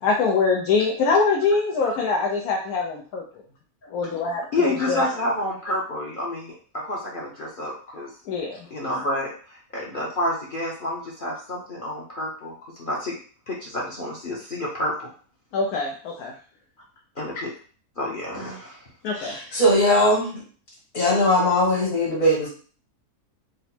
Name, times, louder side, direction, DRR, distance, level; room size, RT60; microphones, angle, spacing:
voice 1, 0.0-3.4 3.9-4.5 4.9-5.0 8.3-8.7 15.5-16.3 19.0-19.5, left 4 dB, 80° left, -1 dB, 1.2 m, -23 dB
voice 2, 4.5-8.1 8.7-13.2 13.5-15.1 17.2-17.5 18.0-18.9, left 1 dB, 45° left, -3 dB, 0.8 m, -29 dB
voice 3, 19.2-20.4 20.9-22.5, left 1 dB, 60° left, -4 dB, 1.9 m, -20 dB
3.8 x 2.1 x 4.2 m, 0.42 s
omnidirectional pair, 1.6 m